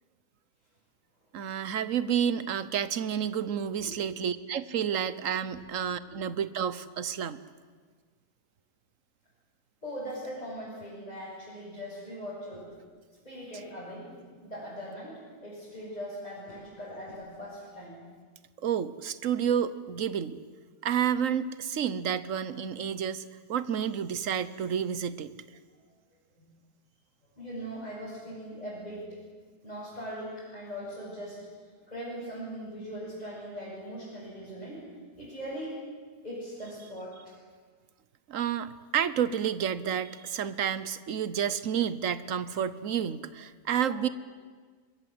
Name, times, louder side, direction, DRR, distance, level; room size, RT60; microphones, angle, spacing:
voice 1, 1.3-7.4 18.6-20.4 20.8-23.2 23.5-25.3 38.3-44.1, right 8 dB, 55° right, 15 dB, 1.2 m, -30 dB
voice 2, 9.8-12.7 13.2-14.2 14.4-18.0 26.4-26.5 27.4-29.1 29.6-31.4 31.9-34.8 35.2-35.7 36.2-37.3 44.0-44.1, equal, 20° left, -9 dB, 7.6 m, -40 dB
27.5 x 23.0 x 7.9 m, 1.5 s
omnidirectional pair, 1.8 m